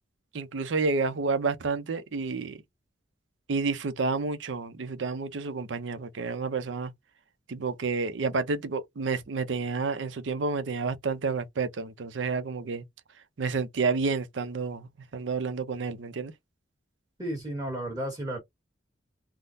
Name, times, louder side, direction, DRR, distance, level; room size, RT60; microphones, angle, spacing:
voice 1, 0.3-2.6 3.5-6.9 7.5-12.8 13.4-16.3, right 4 dB, 75° right, 0.6 m, -30 dB
voice 2, 17.2-18.4, right 1 dB, 20° right, 1.3 m, -33 dB
3.6 x 2.0 x 2.5 m
head